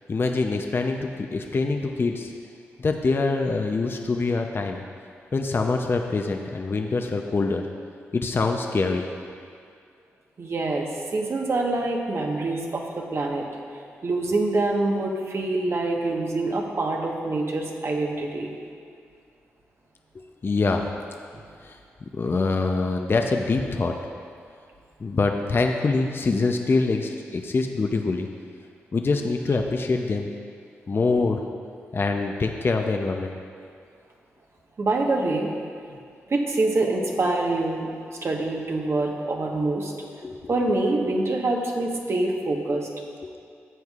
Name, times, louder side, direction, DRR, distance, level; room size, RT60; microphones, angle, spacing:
voice 1, 0.1-2.3 2.8-4.8 5.3-7.6 8.1-9.1 20.4-20.8 21.6-21.8 22.2-23.9 25.0-28.3 28.9-30.3 30.9-31.4 31.9-33.3 40.2-40.5 43.2-43.3, left 3 dB, 45° left, 3 dB, 0.6 m, -24 dB
voice 2, 10.4-13.5 14.0-18.5 34.8-35.5 36.3-39.9 40.5-42.9, right 2 dB, 55° right, 0 dB, 1.3 m, -25 dB
13.5 x 7.9 x 2.5 m, 2.3 s
supercardioid pair, 45°, 5 cm